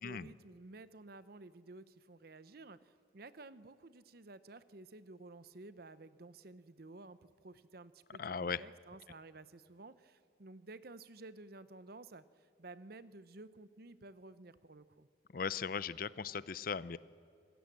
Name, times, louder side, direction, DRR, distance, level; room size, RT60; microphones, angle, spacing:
voice 1, 0.0-15.1, right 2 dB, 55° right, 15 dB, 0.8 m, -53 dB
voice 2, 8.2-8.6 15.3-17.0, left 6 dB, 50° left, 18 dB, 0.5 m, -38 dB
27.0 x 17.5 x 7.5 m, 2.3 s
head